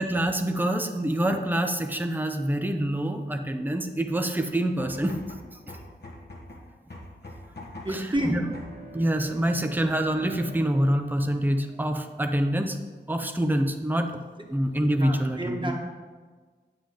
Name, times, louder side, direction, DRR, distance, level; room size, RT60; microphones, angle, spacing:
voice 1, 0.0-5.2 7.9-8.4 8.9-12.8 13.1-14.2 14.5-15.7, right 1 dB, 10° right, 5 dB, 0.8 m, -26 dB
sound 1, 4.8-8.9, left 1 dB, 60° left, 1.6 m, -43 dB
voice 2, 7.8-8.4 14.4-14.5 15.0-15.7, right 1 dB, 25° right, 1 dB, 1.6 m, -29 dB
Bowed string instrument, 8.0-12.6, right 1 dB, 40° right, 2.1 m, -46 dB
8.5 x 7.5 x 3.9 m, 1.4 s
cardioid pair, 40°, 20 cm